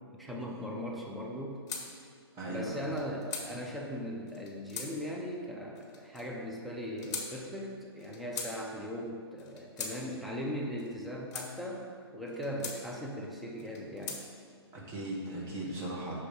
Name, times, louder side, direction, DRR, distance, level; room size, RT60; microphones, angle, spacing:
voice 1, 0.2-1.6 2.5-11.8 12.1-14.2, equal, ahead, -2 dB, 0.5 m, -39 dB
sound 1, 1.7-1.9 2.8-3.5 4.3-4.9 5.8-6.2 7.0-7.3 8.0-8.5 9.4-10.0 10.8-11.5 12.3-12.8 13.6-14.2, left 5 dB, 45° left, 1.5 m, -40 dB
voice 2, 2.3-2.9 14.7-16.2, right 2 dB, 20° right, -4 dB, 1.5 m, -38 dB
6.7 x 5.3 x 5.1 m, 2.2 s
hypercardioid pair, 145°, 14 cm